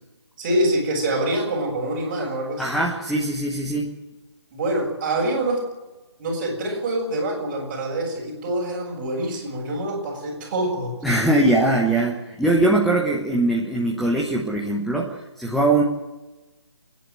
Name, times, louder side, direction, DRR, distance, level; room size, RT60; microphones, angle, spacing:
voice 1, 0.4-2.7 4.5-5.7 6.2-11.0, right 1 dB, 25° right, -2 dB, 6.5 m, -25 dB
voice 2, 2.6-3.9 11.0-15.8, right 2 dB, ahead, -3 dB, 1.1 m, -21 dB
26.5 x 10.5 x 9.3 m, 1.1 s
hypercardioid pair, 160°, 14 cm